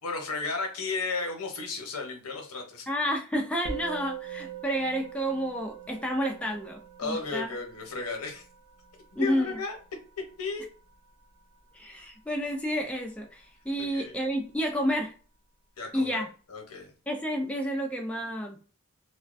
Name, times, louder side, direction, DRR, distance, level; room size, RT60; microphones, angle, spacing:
voice 1, 0.0-2.9 7.0-8.4 9.1-9.8 10.4-10.6 13.8-14.2 15.8-16.2 16.5-16.9, left 4 dB, 80° left, 3 dB, 0.8 m, -34 dB
voice 2, 2.9-7.6 9.2-9.6 11.7-15.1 15.9-16.3 17.1-18.6, equal, 5° left, 1 dB, 0.3 m, -30 dB
Musical instrument, 3.7-13.2, right 7 dB, 85° right, 0.6 m, -44 dB
2.3 x 2.2 x 2.4 m, 0.38 s
head